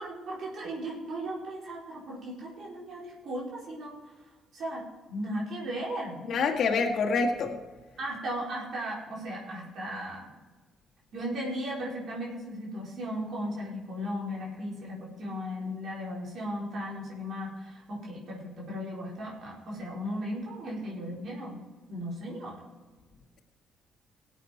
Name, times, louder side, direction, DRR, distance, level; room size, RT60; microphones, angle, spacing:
voice 1, 0.0-3.9 4.5-6.2 8.0-10.3 11.1-21.6 21.9-22.6, equal, 60° right, -4 dB, 4.5 m, -36 dB
voice 2, 6.3-7.5, left 4 dB, 65° left, 1 dB, 2.0 m, -26 dB
17.5 x 8.3 x 4.5 m, 1.3 s
supercardioid pair, 75°, 0 cm